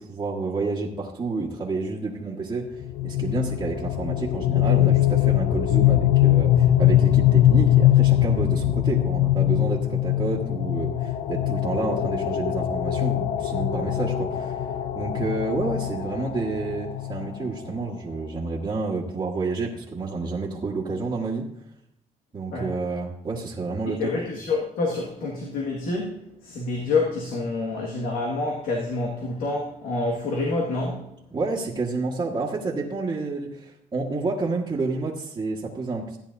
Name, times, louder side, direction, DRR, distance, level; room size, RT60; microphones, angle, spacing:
voice 1, 0.0-2.7 3.0-14.5 14.9-21.4 22.3-24.1 31.3-36.2, right 3 dB, 25° right, -6 dB, 1.6 m, -29 dB
sound 1, 2.8-17.7, left 12 dB, 55° left, 0.5 m, -22 dB
voice 2, 24.0-31.1, left 3 dB, 90° left, -1 dB, 1.9 m, -27 dB
15.5 x 10.0 x 2.7 m, 0.77 s
cardioid pair, 125°, 15 cm